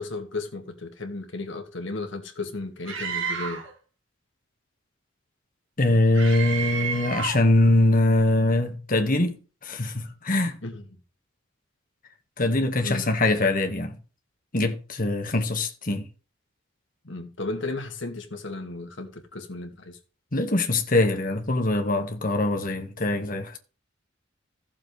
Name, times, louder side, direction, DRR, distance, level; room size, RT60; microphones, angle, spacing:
voice 1, 0.0-3.7 10.6-10.8 12.8-13.1 17.0-20.0, left 2 dB, 65° left, 2.3 m, -34 dB
Screaming, 2.9-3.7 6.1-7.5, right 6 dB, 65° right, 3.6 m, -31 dB
voice 2, 5.8-9.4 9.6-10.6 12.4-14.0 14.5-16.1 20.3-23.6, left 2 dB, 45° left, 1.9 m, -23 dB
15.0 x 7.3 x 3.4 m
head